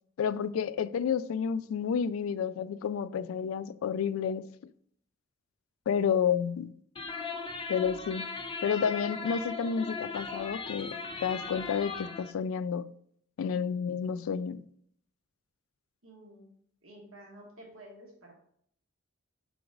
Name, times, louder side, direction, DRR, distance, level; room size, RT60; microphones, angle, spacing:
voice 1, 0.2-4.4 5.9-6.7 7.7-8.3 8.6-12.9 13.4-14.6, left 7 dB, 80° left, 0.3 m, -30 dB
sound 1, 7.0-12.3, left 4 dB, 25° left, 0.5 m, -38 dB
voice 2, 16.0-16.5 16.8-18.3, right 1 dB, 80° right, 1.2 m, -51 dB
4.8 x 3.9 x 5.2 m
head